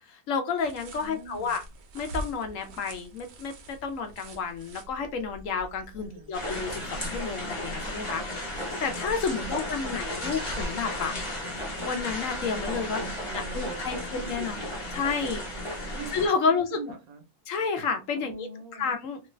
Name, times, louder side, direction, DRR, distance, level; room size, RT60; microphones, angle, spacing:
voice 1, 0.1-1.6 1.9-8.2 8.5-11.1 11.8-13.0 13.3-14.6 14.9-15.5 16.1-16.8 17.5-18.5 18.8-19.2, left 5 dB, 70° left, 6 dB, 1.0 m, -30 dB
sound 1, 0.6-10.7, right 1 dB, 60° right, 0.8 m, -45 dB
voice 2, 1.0-1.6 5.9-6.3 9.4-10.4 12.9-14.7 15.9-16.2 16.4-17.2 18.1-18.9, right 4 dB, 80° right, 5 dB, 1.2 m, -43 dB
sound 2, 6.3-16.3, left 1 dB, 25° left, 0.9 m, -34 dB
3.0 x 2.3 x 3.1 m, 0.26 s
omnidirectional pair, 1.5 m